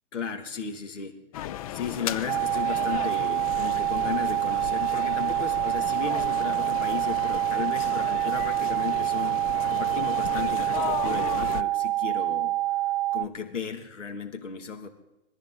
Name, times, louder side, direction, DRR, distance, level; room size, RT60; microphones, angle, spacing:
voice 1, 0.1-1.2 1.7-12.5 13.1-14.9, left 6 dB, 80° left, 5 dB, 2.4 m, -35 dB
sound 1, 1.3-11.6, left 12 dB, 30° left, 0.4 m, -35 dB
sound 2, 2.3-13.2, right 15 dB, 35° right, 0.4 m, -26 dB
21.5 x 14.0 x 3.9 m, 0.95 s
hypercardioid pair, 130°, 36 cm